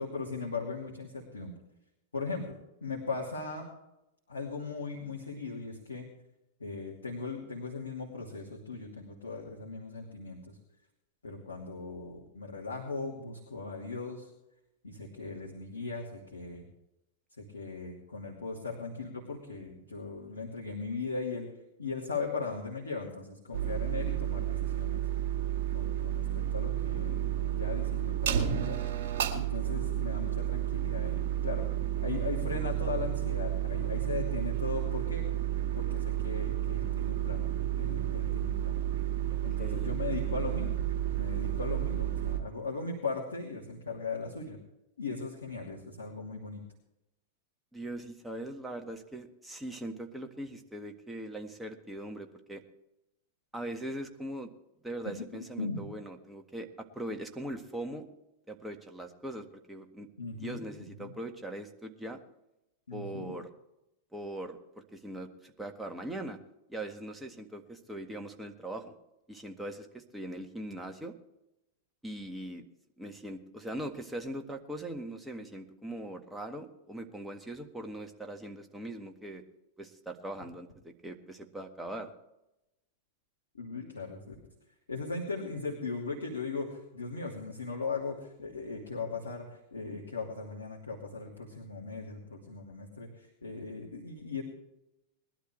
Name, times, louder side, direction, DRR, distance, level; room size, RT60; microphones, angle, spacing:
voice 1, 0.0-1.6 2.1-2.6 2.8-3.7 4.3-6.1 6.6-10.6 11.2-14.3 14.8-16.6 17.4-21.5 21.8-25.1 25.7-28.8 29.3-31.7 32.0-35.4 35.7-37.5 37.7-38.8 39.4-40.8 41.1-44.6 45.0-46.6 55.1-55.9 60.2-60.6 61.0-61.1 62.9-63.3 83.5-84.4 84.9-94.4, left 4 dB, 80° left, -2 dB, 2.6 m, -38 dB
sound 1, 23.5-42.4, right 12 dB, 55° right, 2.0 m, -31 dB
voice 2, 39.3-40.0 40.2-40.5 47.7-52.6 53.5-54.5 54.8-58.1 58.5-60.1 60.4-62.2 62.9-63.5 64.1-66.4 66.7-68.9 69.3-71.1 72.0-72.6 73.0-79.4 79.8-82.1, right 1 dB, 5° right, 4 dB, 1.6 m, -41 dB
20.5 x 12.0 x 3.3 m, 0.90 s
figure-of-eight pair, 95°, 0 cm